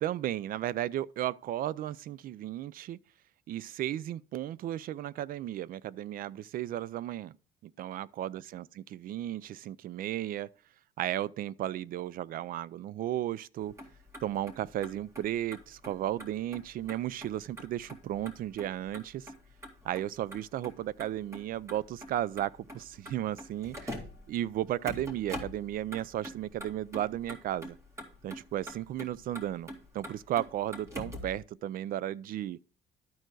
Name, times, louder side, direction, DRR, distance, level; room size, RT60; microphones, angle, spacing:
voice 1, 0.0-3.0 3.5-7.3 7.6-10.5 11.0-13.7 14.2-19.3 19.8-24.0 24.3-27.8 28.2-32.6, right 12 dB, 60° right, 0.4 m, -34 dB
Motor vehicle (road), 13.6-31.4, equal, 15° right, 2.3 m, -46 dB
12.0 x 4.5 x 4.6 m
cardioid pair, 110°, 17 cm